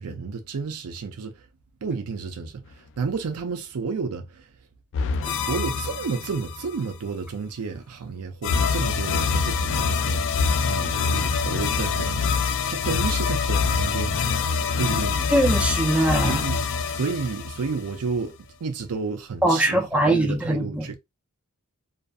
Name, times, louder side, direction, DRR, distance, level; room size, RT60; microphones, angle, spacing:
voice 1, 0.0-1.4 1.8-4.5 5.2-14.3 14.8-15.3 16.3-18.3 18.6-21.0, right 5 dB, 85° right, 0.5 m, -31 dB
sound 1, 4.9-6.8 8.4-18.2, left 5 dB, 55° left, 0.3 m, -25 dB
voice 2, 15.3-16.4 19.4-20.9, right 1 dB, 5° right, 0.5 m, -21 dB
2.6 x 2.4 x 2.3 m
head